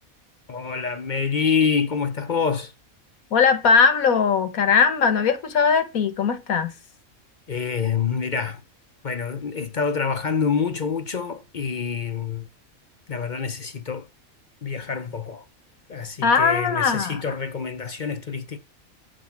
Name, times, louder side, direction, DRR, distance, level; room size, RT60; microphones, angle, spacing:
voice 1, 0.5-2.7 7.5-8.6 9.0-12.5 13.1-14.1 14.6-15.5 15.9-18.6, left 6 dB, 45° left, 0.7 m, -26 dB
voice 2, 3.3-6.7 16.2-17.2, left 5 dB, 80° left, 1.7 m, -19 dB
7.7 x 7.2 x 5.7 m
omnidirectional pair, 1.5 m